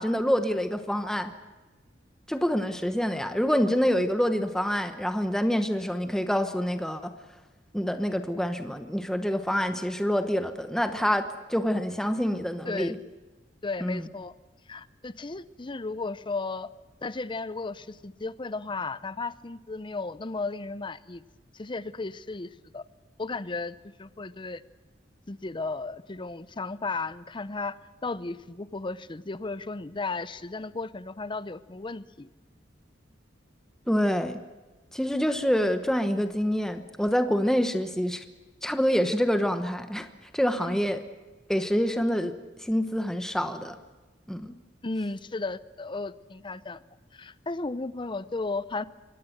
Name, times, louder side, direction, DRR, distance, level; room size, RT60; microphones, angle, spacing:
voice 1, 0.0-1.3 2.3-7.1 7.7-13.0 13.8-14.0 33.9-34.4 34.9-38.2 38.6-40.1 40.3-41.0 41.5-42.3 42.6-43.8 44.3-44.6, equal, 5° left, 8 dB, 1.0 m, -26 dB
voice 2, 13.6-14.3 14.7-16.7 17.0-21.2 21.5-22.8 23.2-24.6 25.3-32.3 40.7-40.8 44.8-46.8 47.1-48.8, left 3 dB, 25° left, 16 dB, 0.6 m, -34 dB
24.0 x 18.0 x 8.0 m, 1.2 s
head